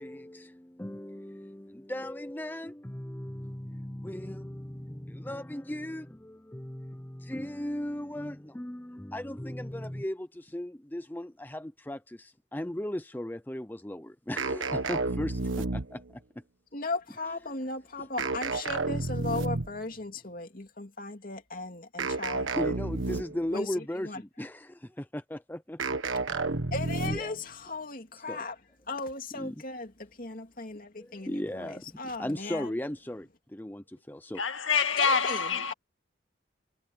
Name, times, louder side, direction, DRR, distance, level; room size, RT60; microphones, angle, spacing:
voice 1, 0.0-16.2 22.5-26.0 27.0-27.3 28.3-28.4 29.4-29.6 31.0-34.4, left 1 dB, 10° left, 0.6 m, -37 dB
sound 1, 14.4-16.1 18.2-19.8 22.0-23.5 25.8-27.4, right 3 dB, 85° right, 1.5 m, -31 dB
voice 2, 16.7-22.6 23.5-24.2 26.7-28.6 28.9-32.7 35.0-35.7, left 3 dB, 45° left, 2.8 m, -37 dB
voice 3, 34.3-35.7, left 5 dB, 90° left, 2.0 m, -26 dB
head